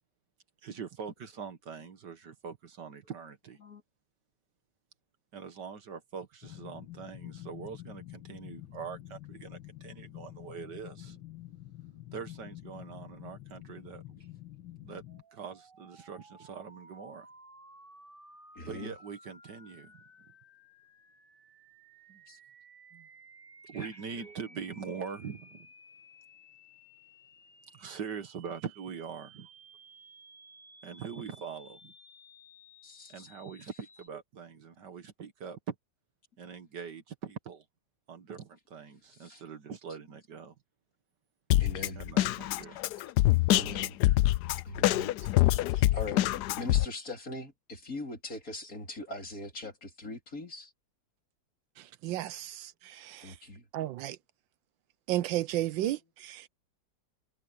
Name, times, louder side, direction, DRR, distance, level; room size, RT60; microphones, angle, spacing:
voice 1, 0.6-3.6 5.3-11.2 12.1-14.0 14.8-15.0 15.3-17.3 18.6-20.0 22.1-22.2 22.9-23.1 23.7-25.7 27.7-29.5 30.8-31.9 33.1-35.8 36.4-37.7 38.1-40.5 41.9-42.8 45.2-45.3 45.6-45.9, right 6 dB, 60° right, 1.9 m, -43 dB
sound 1, 6.4-15.2, left 14 dB, 90° left, 2.1 m, -47 dB
sound 2, 15.1-34.1, right 1 dB, 25° right, 7.4 m, -56 dB
voice 2, 18.6-18.9 22.3-22.4 23.7-23.9 24.2-24.3 32.8-33.3 39.2-39.4 41.6-42.3 43.5-44.0 44.6-45.1 45.4-45.5 45.9-50.7 53.2-53.6, left 2 dB, 45° left, 4.3 m, -41 dB
Drum kit, 41.5-46.9, left 15 dB, 70° left, 1.0 m, -25 dB
voice 3, 52.0-53.3 53.7-54.2 55.1-56.5, right 14 dB, 80° right, 1.3 m, -33 dB
omnidirectional pair, 2.1 m